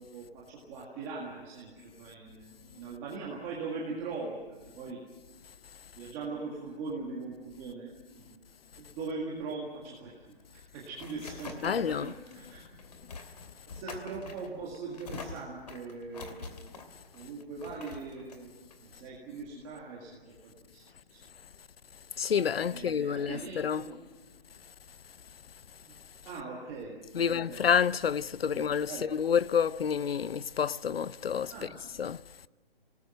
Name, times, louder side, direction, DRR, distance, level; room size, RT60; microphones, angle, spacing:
voice 1, 0.0-5.0 6.0-8.4 8.8-10.4 10.7-12.6 12.9-13.0 13.7-16.7 17.1-18.5 19.0-20.8 21.1-21.2 22.6-24.0 25.8-26.0 26.3-27.7 28.5-29.1 31.5-31.7, right 4 dB, 10° right, 1.9 m, -41 dB
sound 1, 10.4-19.6, left 3 dB, 40° left, 2.6 m, -46 dB
voice 2, 11.6-12.1 22.2-23.8 27.1-31.7 32.0-32.2, left 7 dB, 75° left, 0.7 m, -29 dB
26.0 x 19.0 x 7.7 m
hypercardioid pair, 175°, 30 cm